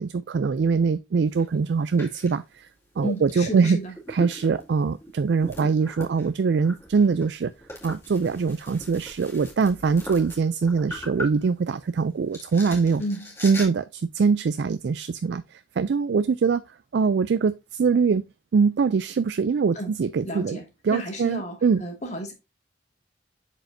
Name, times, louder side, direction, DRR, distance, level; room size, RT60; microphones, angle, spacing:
voice 1, 0.0-2.7 3.0-3.8 4.1-7.5 7.8-13.0 13.4-16.6 16.9-18.2 18.5-20.6 20.8-21.8, right 5 dB, 65° right, 0.3 m, -23 dB
sound 1, 1.2-1.5 2.0-2.4 3.2-3.3 3.6-12.0 12.3-13.6, equal, 15° left, 2.3 m, -40 dB
voice 2, 3.0-3.9 13.0-13.3 19.8-20.0 20.2-22.3, equal, 40° left, 2.0 m, -32 dB
7.6 x 5.0 x 2.6 m
head